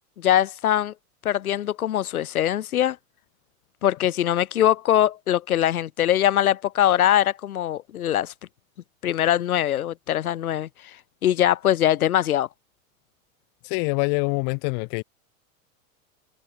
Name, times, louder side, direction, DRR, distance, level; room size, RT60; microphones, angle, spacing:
voice 1, 0.2-0.9 1.3-3.0 3.8-8.3 9.0-10.7 11.2-12.5, left 11 dB, 90° left, 3.5 m, -22 dB
voice 2, 13.6-15.0, left 40 dB or more, 55° left, 3.5 m, -25 dB
supercardioid pair, 120°, 42 cm